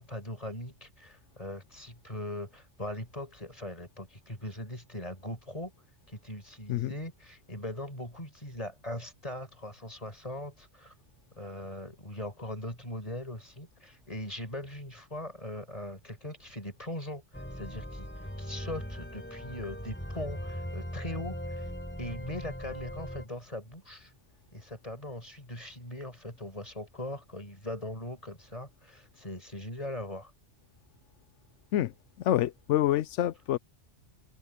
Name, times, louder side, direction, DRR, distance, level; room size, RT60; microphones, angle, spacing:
voice 1, 0.0-5.7 6.1-10.9 11.4-18.1 18.4-21.7 22.0-24.1 24.5-30.3, left 1 dB, 30° left, 5.5 m, -40 dB
sound 1, 17.3-23.3, equal, 10° left, 3.8 m, -39 dB
voice 2, 31.7-33.6, left 13 dB, 90° left, 0.9 m, -27 dB
omnidirectional pair, 1.2 m